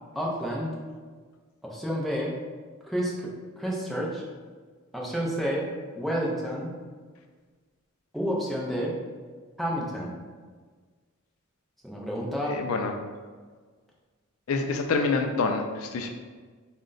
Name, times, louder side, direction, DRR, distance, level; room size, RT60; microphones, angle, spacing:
voice 1, 0.2-0.7 1.6-2.3 2.8-3.3 3.6-4.2 4.9-5.6 6.0-6.7 8.1-8.9 9.6-10.1 11.8-12.5, equal, ahead, -4 dB, 0.6 m, -29 dB
voice 2, 12.4-12.9 14.5-16.1, left 4 dB, 70° left, 4 dB, 0.4 m, -27 dB
3.7 x 2.2 x 3.8 m, 1.5 s
head